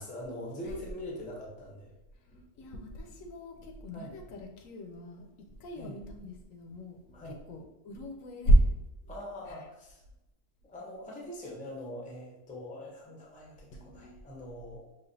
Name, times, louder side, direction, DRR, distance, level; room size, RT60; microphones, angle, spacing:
voice 1, 0.0-1.9 3.9-4.2 5.7-6.0 7.1-7.4 9.1-10.0 10.6-14.8, left 1 dB, 10° left, -2 dB, 0.4 m, -43 dB
voice 2, 2.3-8.7 9.5-9.6 13.7-14.2, right 1 dB, 80° left, 4 dB, 1.0 m, -31 dB
5.0 x 2.4 x 2.6 m, 0.94 s
omnidirectional pair, 1.4 m